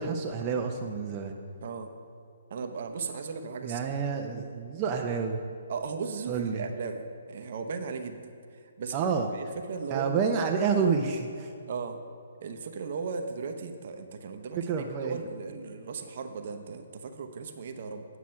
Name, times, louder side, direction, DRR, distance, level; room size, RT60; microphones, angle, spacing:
voice 1, 0.0-1.3 3.6-5.4 6.3-6.6 8.9-9.3 9.9-11.5 14.7-15.2, right 5 dB, 30° right, 2 dB, 0.6 m, -29 dB
voice 2, 1.6-1.9 2.5-3.8 4.9-5.0 5.7-10.2 11.7-12.0 12.4-18.1, right 5 dB, 55° right, 7 dB, 0.9 m, -37 dB
9.5 x 6.0 x 5.7 m, 2.4 s
hypercardioid pair, 140°, 0 cm